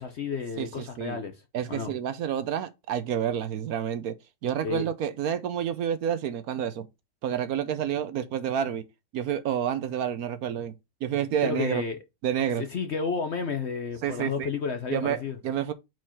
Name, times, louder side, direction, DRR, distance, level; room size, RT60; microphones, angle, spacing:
voice 1, 0.0-1.3 1.7-1.9 4.6-4.9 11.4-12.0 12.6-15.4, left 5 dB, 55° left, 0.8 m, -31 dB
voice 2, 0.6-1.2 1.5-4.1 4.4-6.9 7.2-8.8 9.1-10.7 11.0-11.8 12.2-12.6 14.0-14.5 14.9-15.7, right 9 dB, 70° right, 1.1 m, -29 dB
4.6 x 4.6 x 5.6 m
omnidirectional pair, 1.8 m